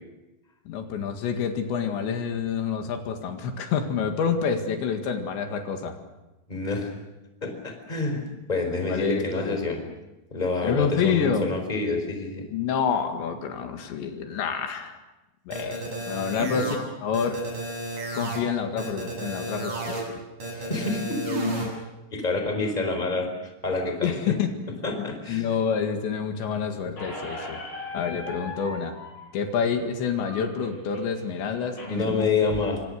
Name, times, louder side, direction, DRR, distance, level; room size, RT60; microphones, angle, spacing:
voice 1, 0.7-6.0 8.9-9.6 10.6-11.5 12.5-15.0 15.5-17.4 18.1-20.0 24.0-24.5 25.0-27.6 27.9-29.0 29.3-32.3, left 6 dB, 80° left, 5 dB, 4.3 m, -28 dB
voice 2, 6.5-6.9 7.4-9.8 10.3-12.4 16.4-16.6 20.5-21.4 22.1-23.3 23.6-24.1 24.8-25.5 31.9-32.8, left 3 dB, 10° left, 5 dB, 4.0 m, -27 dB
sound 1, 15.5-16.7 17.1-18.4 18.8-20.0 20.4-21.6, right 1 dB, 45° right, 9.0 m, -32 dB
Squeak, 27.0-32.0, left 2 dB, 45° left, 9.6 m, -40 dB
27.5 x 25.5 x 6.6 m, 1.0 s
omnidirectional pair, 5.1 m